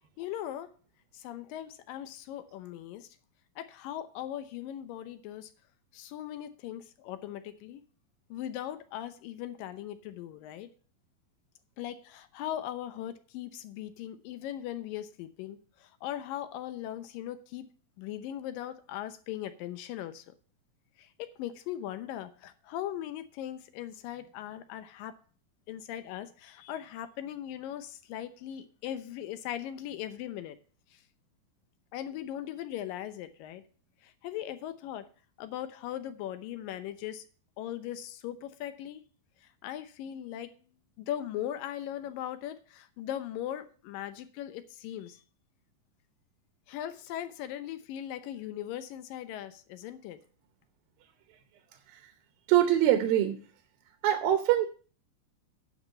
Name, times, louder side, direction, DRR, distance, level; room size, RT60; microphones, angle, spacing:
voice 1, 0.2-0.7 1.1-3.1 3.6-5.5 5.9-7.8 8.3-10.7 11.8-17.7 18.0-20.3 21.0-25.1 25.7-30.6 31.9-33.6 34.0-35.1 35.4-37.2 37.6-39.0 39.6-40.5 41.0-45.2 46.7-50.2, left 11 dB, 80° left, 2.5 m, -39 dB
voice 2, 52.5-53.4 54.0-54.7, right 12 dB, 80° right, 2.6 m, -23 dB
10.0 x 6.3 x 7.5 m
omnidirectional pair, 4.1 m